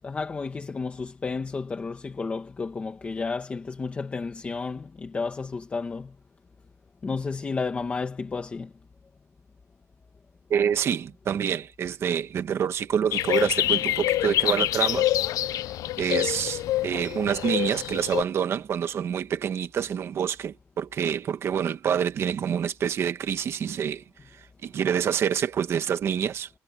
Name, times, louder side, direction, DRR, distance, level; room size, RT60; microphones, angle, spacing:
voice 1, 0.0-6.1 7.0-8.7, left 4 dB, 20° left, 1.8 m, -32 dB
voice 2, 10.5-15.1 16.0-24.0 24.6-26.5, right 8 dB, 45° right, 1.4 m, -27 dB
sound 1, 13.1-18.2, left 14 dB, 75° left, 0.6 m, -26 dB
cardioid pair, 180°, 6 cm